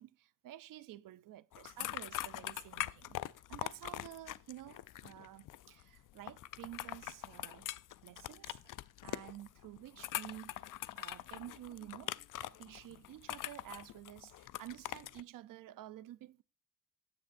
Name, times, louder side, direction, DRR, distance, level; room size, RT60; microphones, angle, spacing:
voice 1, 0.0-7.7 8.0-10.7 10.9-16.4, right 13 dB, 85° right, 0.5 m, -51 dB
sound 1, 1.5-15.2, left 14 dB, 75° left, 0.5 m, -43 dB
13.5 x 9.6 x 2.6 m
cardioid pair, 95°, 32 cm